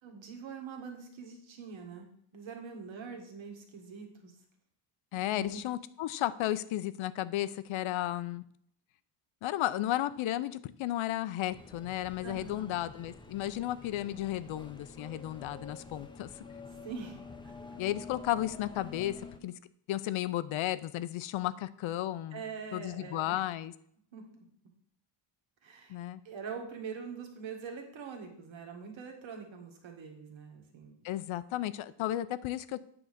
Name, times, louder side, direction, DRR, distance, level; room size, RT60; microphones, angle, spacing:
voice 1, 0.0-2.1 2.3-4.4 5.1-5.6 12.2-12.8 16.8-17.2 17.4-17.5 22.3-23.4 24.1-24.5 25.6-26.0 26.2-31.0, right 5 dB, 65° right, 2 dB, 1.9 m, -44 dB
voice 2, 5.1-8.4 9.4-16.3 17.8-19.5 19.9-22.4 22.7-23.7 25.9-26.2 31.0-32.8, left 13 dB, 70° left, 15 dB, 0.6 m, -34 dB
sound 1, 11.5-19.4, left 4 dB, 10° left, 0.6 m, -49 dB
8.6 x 3.9 x 6.7 m, 0.67 s
cardioid pair, 135°, 49 cm